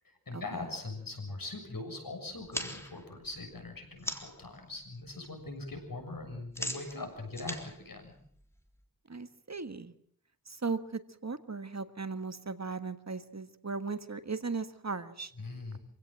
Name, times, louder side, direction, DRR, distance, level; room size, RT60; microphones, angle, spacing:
voice 1, 0.3-7.6 7.9-8.2 15.4-15.8, left 2 dB, 75° left, 4 dB, 7.0 m, -41 dB
sound 1, 2.3-4.5 4.8-5.3 5.5-8.8, equal, 5° left, 3.6 m, -41 dB
voice 2, 9.1-9.9 10.5-15.3, right 4 dB, 50° right, 10 dB, 1.6 m, -37 dB
26.5 x 17.0 x 7.7 m, 0.63 s
wide cardioid pair, 65°, 35 cm